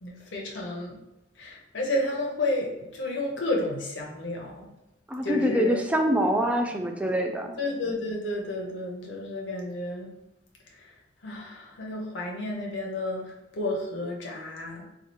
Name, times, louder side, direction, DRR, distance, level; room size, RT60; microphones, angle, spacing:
voice 1, 0.0-1.0 1.4-4.7 5.2-5.8 7.6-10.1 10.7-10.9 11.2-14.8, left 2 dB, 85° left, -1 dB, 0.8 m, -31 dB
voice 2, 5.1-7.5, equal, 5° right, 3 dB, 0.4 m, -25 dB
4.1 x 2.4 x 3.0 m, 0.92 s
head